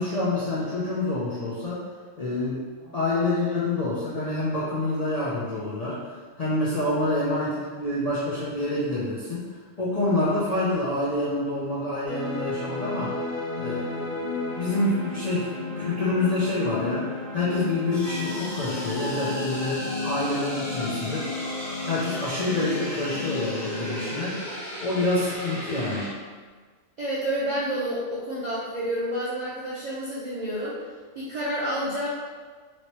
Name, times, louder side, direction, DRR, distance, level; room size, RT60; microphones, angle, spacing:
voice 1, 0.0-1.8 2.2-2.6 2.9-6.0 6.4-9.4 9.8-13.1 13.5-21.3 21.9-24.4 24.8-26.1, left 2 dB, 55° left, -9 dB, 0.4 m, -27 dB
sound 1, 12.0-26.1, left 2 dB, 15° left, 1.2 m, -32 dB
voice 2, 27.0-30.8 31.1-32.1, right 1 dB, 60° right, -8 dB, 0.4 m, -29 dB
3.0 x 2.9 x 2.9 m, 1.5 s
omnidirectional pair, 1.4 m